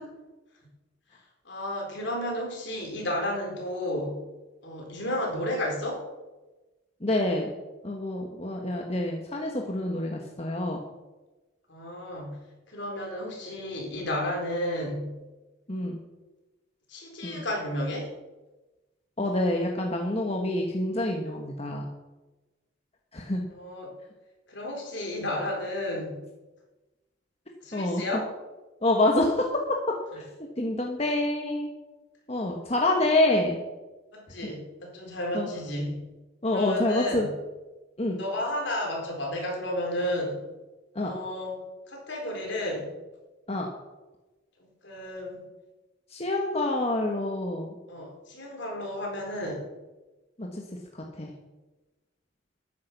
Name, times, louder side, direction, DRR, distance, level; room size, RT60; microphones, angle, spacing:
voice 1, 1.4-4.2 4.6-6.0 11.7-12.4 12.7-15.2 16.9-18.1 23.5-23.9 24.5-26.2 27.6-28.3 34.1-36.0 36.5-37.3 38.2-40.4 41.0-42.9 44.6-45.4 47.9-49.6, left 1 dB, 65° left, 0 dB, 4.0 m, -32 dB
voice 2, 7.0-7.5 7.8-10.8 15.7-16.0 17.2-17.4 19.2-21.9 23.1-23.4 27.7-28.0 28.8-29.5 30.1-30.2 30.6-31.7 32.3-33.6 35.3-35.5 36.4-37.3 38.0-38.2 40.9-41.1 43.5-43.7 46.1-47.7 50.4-50.6 50.9-51.3, left 1 dB, 30° left, 1 dB, 1.3 m, -27 dB
13.5 x 10.5 x 5.9 m, 1.1 s
head